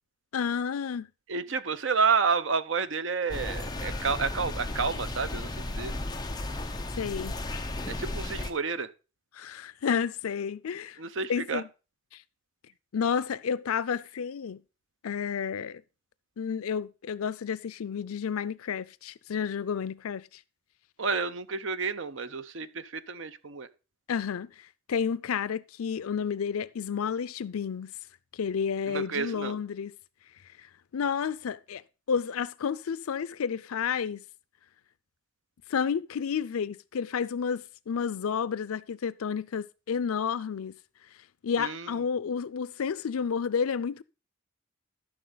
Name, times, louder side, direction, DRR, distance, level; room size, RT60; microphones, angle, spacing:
voice 1, 0.3-1.1 6.9-7.4 9.3-11.0 11.3-11.6 12.9-14.6 15.0-15.8 16.4-20.3 24.1-27.9 28.3-29.9 30.9-31.8 32.1-34.2 35.7-40.8 41.4-44.0, left 6 dB, 90° left, 0.4 m, -31 dB
voice 2, 1.3-5.9 7.9-8.9 11.0-11.6 21.0-23.7 28.9-29.6 41.6-42.0, right 5 dB, 60° right, 0.7 m, -30 dB
sound 1, 3.3-8.5, left 2 dB, 20° left, 0.8 m, -34 dB
12.5 x 6.2 x 3.9 m
head